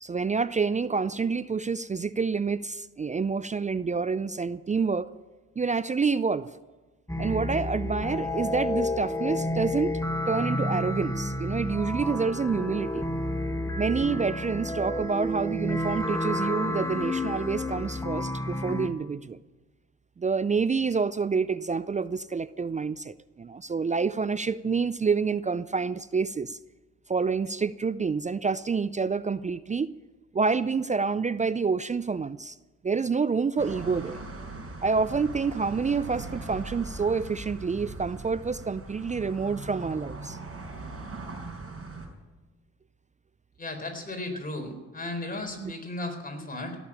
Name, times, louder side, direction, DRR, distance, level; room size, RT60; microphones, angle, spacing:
voice 1, 0.0-5.1 5.6-6.5 7.2-10.0 10.3-13.0 13.8-19.4 20.2-26.6 27.1-29.9 30.3-32.6 32.8-34.2 34.8-40.4 45.6-45.7, right 5 dB, 20° right, 17 dB, 0.4 m, -28 dB
sound 1, 7.1-18.9, left 1 dB, 10° left, 1.8 m, -30 dB
sound 2, 33.6-42.1, right 3 dB, 40° right, 4.9 m, -40 dB
voice 2, 43.6-46.8, left 2 dB, 25° left, 4 dB, 4.1 m, -35 dB
17.0 x 7.2 x 9.8 m, 1.2 s
supercardioid pair, 55°, 35 cm